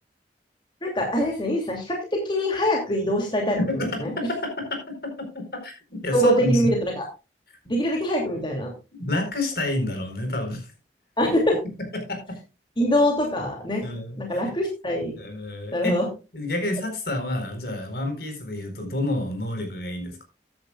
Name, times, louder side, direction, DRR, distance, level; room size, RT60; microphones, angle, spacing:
voice 1, 0.8-3.6 4.0-4.1 6.1-7.1 7.7-8.7 11.2-11.6 12.8-13.8 14.2-15.1 15.7-16.1, equal, 25° left, 1 dB, 2.6 m, -23 dB
voice 2, 3.6-6.7 8.9-10.7 11.9-12.4 13.8-14.4 15.2-16.0 16.3-20.2, left 1 dB, 60° left, 5 dB, 4.2 m, -29 dB
14.5 x 10.5 x 2.4 m, 0.29 s
head